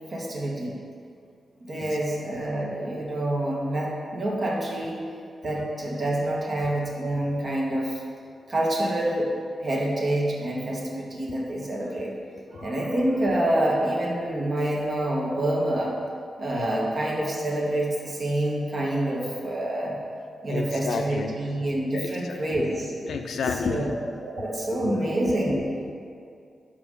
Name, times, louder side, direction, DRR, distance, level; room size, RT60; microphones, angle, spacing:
voice 1, 0.1-0.7 1.6-5.0 5.4-8.0 8.5-9.3 9.6-12.1 12.5-15.9 16.4-20.0 20.4-22.9 23.6-23.9 24.2-25.6, right 1 dB, 55° right, -3 dB, 1.2 m, -27 dB
voice 2, 16.5-16.8 20.5-21.3 21.9-22.6 23.0-23.9 24.8-25.9, left 5 dB, 80° left, 5 dB, 0.4 m, -32 dB
4.8 x 3.8 x 5.4 m, 2.3 s
cardioid pair, 50°, 0 cm